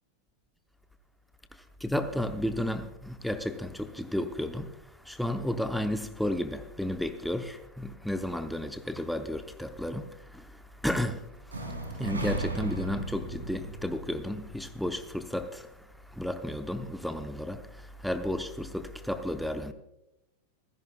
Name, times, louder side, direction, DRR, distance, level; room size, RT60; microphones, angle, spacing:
voice 1, 1.5-19.7, left 1 dB, ahead, 0.7 m, -33 dB
sound 1, 11.5-15.4, right 1 dB, 75° right, 2.9 m, -37 dB
27.0 x 10.5 x 2.3 m
figure-of-eight pair, 90°, 0 cm